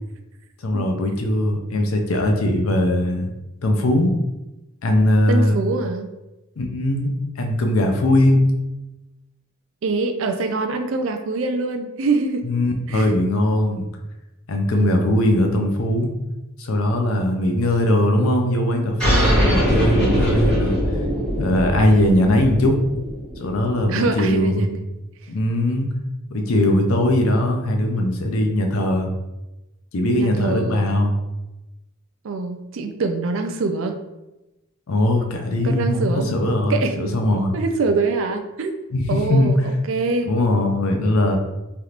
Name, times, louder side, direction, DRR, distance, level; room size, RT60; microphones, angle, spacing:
voice 1, 0.6-3.3 3.6-4.1 4.8-5.6 6.6-8.4 12.4-13.9 14.5-16.1 16.6-20.8 21.4-22.8 23.4-24.7 25.3-25.9 26.3-29.1 29.9-31.1 34.9-37.6 38.9-39.5 40.3-41.4, left 1 dB, 75° left, 3 dB, 0.5 m, -20 dB
voice 2, 5.3-6.1 9.8-12.5 12.9-13.1 14.7-15.2 22.0-22.4 23.9-24.8 30.1-31.0 32.2-34.0 35.6-36.4 36.7-37.0 37.5-38.7 39.1-40.3, right 3 dB, 65° right, 7 dB, 0.4 m, -24 dB
sound 1, 19.0-24.1, equal, 5° left, 1.4 m, -21 dB
3.3 x 2.8 x 2.4 m, 1.0 s
head